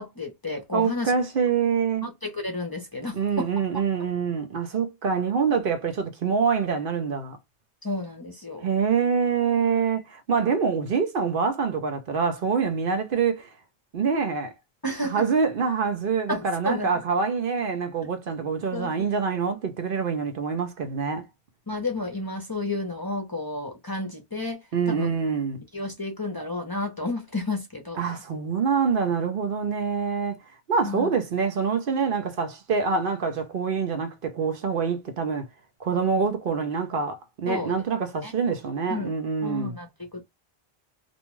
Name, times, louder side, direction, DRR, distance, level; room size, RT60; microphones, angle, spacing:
voice 1, 0.0-1.1 2.0-3.5 7.8-8.6 14.8-15.2 16.3-16.9 18.7-18.9 21.7-25.1 25.7-28.1 30.8-31.1 37.5-37.8 38.2-38.3 38.9-39.1 39.4-40.2, left 2 dB, 25° left, 0.6 m, -31 dB
voice 2, 0.7-2.1 3.1-7.4 8.6-13.5 13.9-14.5 15.1-21.2 24.7-25.6 28.0-30.4 30.7-35.5 35.8-39.7, right 5 dB, 65° right, 0.8 m, -25 dB
2.6 x 2.2 x 3.0 m
omnidirectional pair, 1.0 m